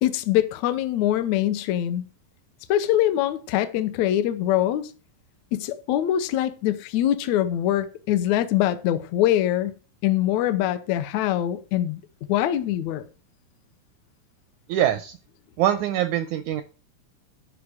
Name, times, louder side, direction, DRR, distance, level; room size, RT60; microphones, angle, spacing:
voice 1, 0.0-2.0 2.7-4.9 5.5-9.8 10.0-12.0 12.3-13.0, left 12 dB, 75° left, 1.7 m, -23 dB
voice 2, 14.7-15.2 15.6-16.6, right 11 dB, 85° right, 1.7 m, -23 dB
11.5 x 5.1 x 4.9 m
omnidirectional pair, 4.1 m